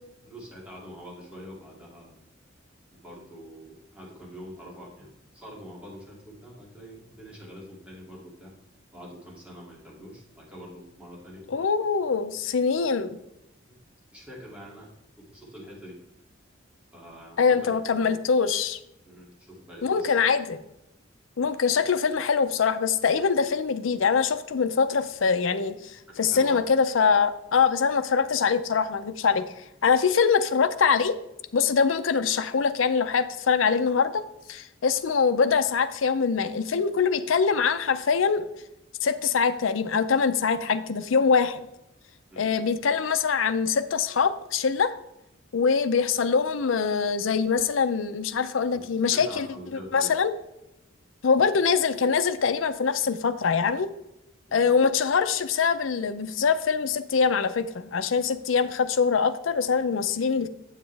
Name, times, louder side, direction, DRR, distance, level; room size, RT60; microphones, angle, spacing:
voice 1, 0.2-2.2 3.0-8.5 8.9-11.5 14.1-14.9 15.2-16.0 16.9-18.2 19.1-20.1 26.1-26.6 42.3-42.6 48.7-48.8 49.1-50.1 54.5-54.7, equal, 5° right, -4 dB, 2.5 m, -45 dB
voice 2, 11.5-13.2 17.4-18.8 19.8-20.6 21.4-25.8 26.2-29.4 29.8-31.2 31.5-34.2 34.5-38.5 39.0-41.6 42.4-44.9 45.5-49.5 49.9-50.3 51.2-53.9 54.5-60.5, left 5 dB, 90° left, 10 dB, 0.5 m, -23 dB
8.7 x 7.4 x 3.4 m, 0.87 s
head